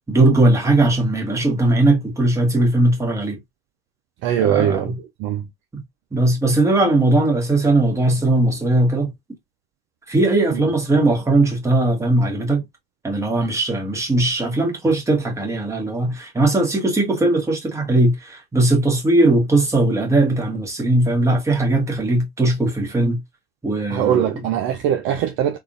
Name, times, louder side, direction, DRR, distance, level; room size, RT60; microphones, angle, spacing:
voice 1, 0.1-3.4 4.4-5.0 6.1-9.1 10.1-12.6 13.0-23.2 23.6-24.5, right 2 dB, 10° right, 1.3 m, -19 dB
voice 2, 4.2-4.9 5.2-5.5 23.9-25.6, right 10 dB, 40° right, 0.5 m, -21 dB
3.6 x 2.5 x 2.4 m
hypercardioid pair, 95°, 32 cm